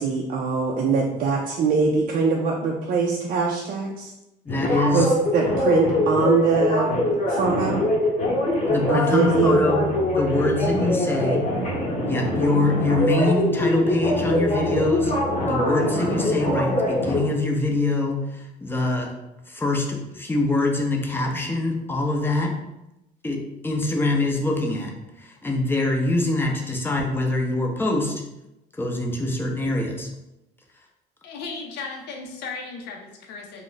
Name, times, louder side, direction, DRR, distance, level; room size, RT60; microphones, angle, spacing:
voice 1, 0.0-4.1 4.9-6.9 7.3-7.8 8.9-9.6, right 5 dB, 55° right, -1 dB, 0.4 m, -22 dB
sound 1, 4.5-17.2, left 1 dB, 45° left, 0.8 m, -23 dB
voice 2, 4.5-5.1 8.7-9.9 10.1-11.5 12.1-15.1 15.4-19.1 19.5-22.5 23.2-24.9 25.2-28.1 28.8-30.1, left 2 dB, 15° left, 0 dB, 0.5 m, -24 dB
Telephone, 9.2-11.2 11.5-17.4, right 1 dB, 30° right, 0.8 m, -39 dB
voice 3, 31.2-33.6, left 4 dB, 85° left, 1 dB, 0.5 m, -36 dB
2.4 x 2.1 x 3.8 m, 0.93 s
cardioid pair, 110°, 17 cm